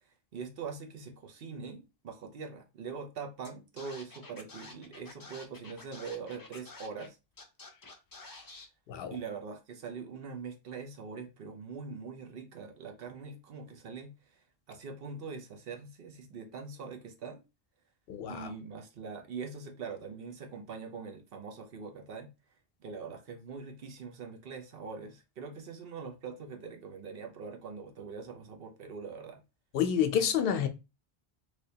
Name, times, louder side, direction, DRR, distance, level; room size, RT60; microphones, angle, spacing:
voice 1, 0.3-7.2 9.1-14.4 14.7-17.4 18.3-22.3 22.8-29.4, right 5 dB, 65° right, 1.0 m, -43 dB
Scratching (performance technique), 3.4-3.5 3.8-7.1 7.4-8.7, left 3 dB, 30° left, 0.4 m, -49 dB
voice 2, 18.1-18.5 29.7-30.7, left 8 dB, 70° left, 0.7 m, -28 dB
3.3 x 2.9 x 2.7 m
omnidirectional pair, 1.0 m